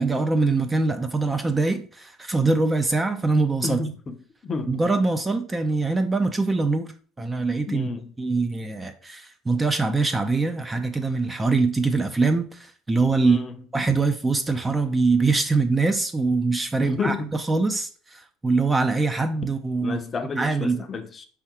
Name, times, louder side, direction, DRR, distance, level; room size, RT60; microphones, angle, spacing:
voice 1, 0.0-3.8 4.7-7.9 8.2-13.4 13.7-20.0 20.3-20.9, right 3 dB, 15° right, 0.4 m, -23 dB
voice 2, 3.6-4.1 4.4-4.8 7.7-8.0 13.2-13.5 16.8-17.3 19.8-21.3, left 3 dB, 30° left, 0.6 m, -30 dB
4.5 x 3.5 x 2.9 m
supercardioid pair, 110°, 0 cm